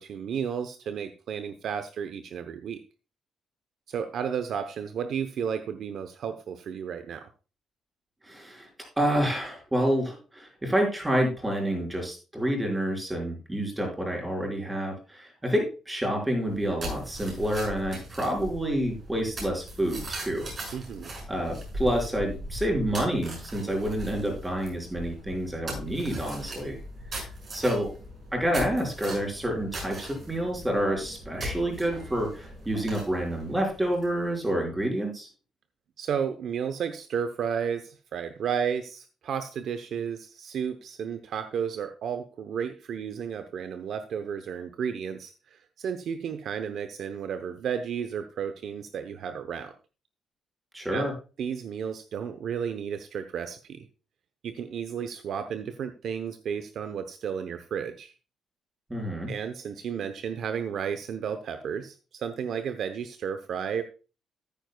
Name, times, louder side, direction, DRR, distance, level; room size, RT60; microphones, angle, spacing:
voice 1, 0.0-2.8 3.9-7.3 20.7-21.1 36.0-49.7 50.9-51.1 51.4-53.9 54.4-58.1 59.3-63.8, right 7 dB, 65° right, 9 dB, 0.8 m, -33 dB
voice 2, 8.3-8.7 9.0-20.5 21.3-26.8 27.5-27.9 28.3-35.3 50.7-51.1 58.9-59.3, right 1 dB, 15° right, 0 dB, 5.2 m, -28 dB
sound 1, 16.4-34.4, equal, 45° right, 6.2 m, -39 dB
14.0 x 9.2 x 2.3 m, 0.33 s
cardioid pair, 90°, 0 cm